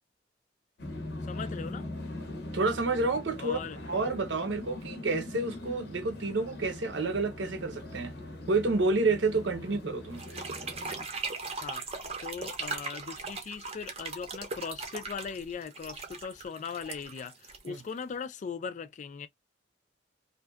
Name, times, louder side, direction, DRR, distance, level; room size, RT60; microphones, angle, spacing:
sound 1, 0.8-11.0, left 1 dB, 65° left, 0.7 m, -41 dB
voice 1, 1.3-1.8 3.4-3.8 9.6-9.8 11.6-11.8 12.2-19.3, left 6 dB, 40° left, 0.3 m, -39 dB
voice 2, 2.5-3.6 3.8-8.1 8.5-10.2 17.7-17.8, right 3 dB, 80° right, 0.7 m, -29 dB
sound 2, 10.1-18.1, right 4 dB, 35° right, 0.6 m, -39 dB
2.6 x 2.2 x 2.2 m
head